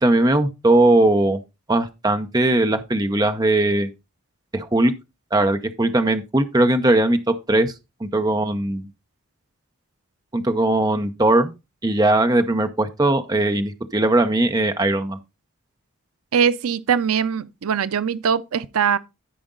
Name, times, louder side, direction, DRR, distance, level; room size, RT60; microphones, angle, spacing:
voice 1, 0.0-1.4 1.7-3.9 4.5-4.9 5.3-7.7 8.0-8.9 10.3-11.5 11.8-15.2, right 2 dB, 20° right, 0.8 m, -19 dB
voice 2, 16.3-19.0, right 7 dB, 85° right, 0.5 m, -21 dB
12.5 x 5.1 x 3.8 m
head